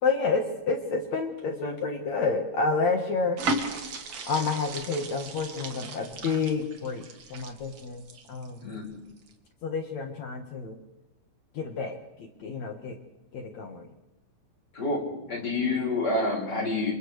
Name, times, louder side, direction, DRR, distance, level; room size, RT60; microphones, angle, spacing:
voice 1, 0.0-3.4 4.3-7.0 7.3-8.0 8.3-8.7 9.6-10.8 11.5-13.0 13.3-13.9, left 4 dB, 55° left, 3 dB, 2.3 m, -29 dB
sound 1, 3.4-8.7 9.2-9.3, right 2 dB, 50° right, 2.1 m, -35 dB
voice 2, 14.7-16.9, left 2 dB, 25° left, -1 dB, 5.8 m, -28 dB
29.5 x 27.5 x 3.4 m, 0.95 s
omnidirectional pair, 4.5 m